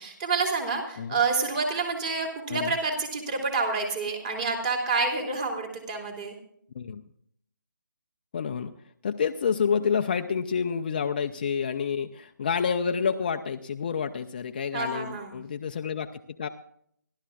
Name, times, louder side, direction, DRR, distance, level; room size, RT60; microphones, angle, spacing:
voice 1, 0.0-6.4 14.7-15.3, right 4 dB, 25° right, 2 dB, 3.1 m, -28 dB
voice 2, 8.3-8.7 9.0-16.5, left 6 dB, 30° left, 6 dB, 0.5 m, -28 dB
27.5 x 12.0 x 2.4 m, 0.66 s
figure-of-eight pair, 155°, 11 cm